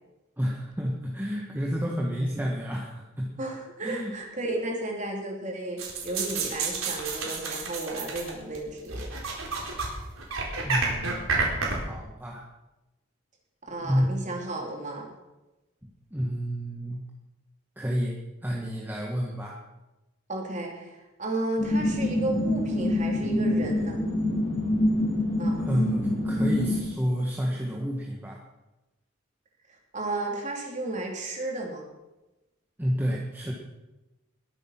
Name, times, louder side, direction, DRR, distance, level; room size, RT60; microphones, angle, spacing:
voice 1, 0.4-3.4 3.8-4.1 10.6-12.4 13.8-14.0 16.1-17.0 17.7-19.6 25.6-28.4 32.8-33.5, equal, 10° right, -2 dB, 1.7 m, -30 dB
voice 2, 3.4-9.0 13.6-15.1 20.3-24.0 25.4-25.6 29.9-31.8, right 2 dB, 35° right, 0 dB, 3.6 m, -33 dB
sound 1, 5.8-8.6 8.9-9.9 10.2-11.8, right 4 dB, 85° right, 4.4 m, -29 dB
sound 2, 21.6-26.8, left 1 dB, 30° left, 6.6 m, -26 dB
21.5 x 8.8 x 6.0 m, 1.0 s
head